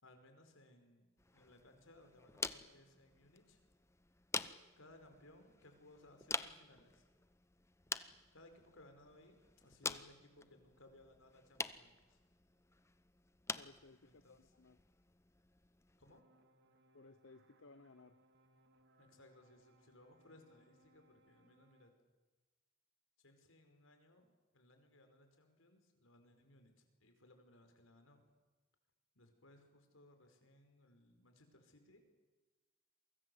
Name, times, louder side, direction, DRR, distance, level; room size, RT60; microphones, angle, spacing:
voice 1, 0.0-1.1 1.3-3.6 4.8-7.1 8.3-12.2 14.0-14.4 16.0-16.2 19.0-21.9 23.2-28.2 29.2-32.0, left 1 dB, 85° left, 6 dB, 5.2 m, -64 dB
sound 1, 1.2-16.2, left 3 dB, 15° left, 0.8 m, -48 dB
voice 2, 13.6-14.8 16.9-18.2, left 3 dB, 70° left, 13 dB, 0.9 m, -61 dB
sound 2, 16.1-21.9, right 1 dB, 55° right, 2.4 m, -71 dB
29.0 x 24.0 x 8.0 m, 1.2 s
head